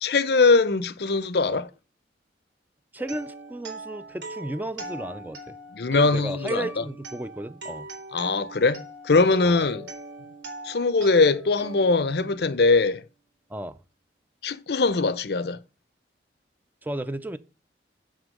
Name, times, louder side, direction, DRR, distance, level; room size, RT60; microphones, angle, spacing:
voice 1, 0.0-1.7 5.7-6.8 8.1-9.8 10.6-13.0 14.4-15.6, left 3 dB, 65° left, 0.6 m, -21 dB
voice 2, 2.9-5.6 5.9-7.9 9.4-9.6 13.5-13.8 16.8-17.4, right 1 dB, 10° right, 0.4 m, -34 dB
sound 1, 3.0-12.9, right 1 dB, 90° right, 3.2 m, -41 dB
7.0 x 6.3 x 6.4 m
head